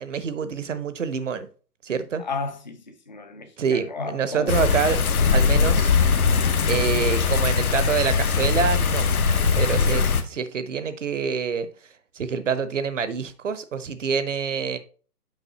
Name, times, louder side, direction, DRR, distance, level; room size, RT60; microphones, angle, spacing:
voice 1, 0.0-1.5 1.8-2.2 3.6-5.0 5.3-5.9 6.7-9.1 9.6-11.7 12.1-14.8, right 6 dB, 50° right, 0.7 m, -26 dB
voice 2, 2.2-4.6, left 4 dB, 30° left, 0.5 m, -34 dB
sound 1, 4.5-10.2, left 5 dB, 60° left, 0.9 m, -21 dB
7.2 x 5.2 x 2.8 m
figure-of-eight pair, 140°, 48 cm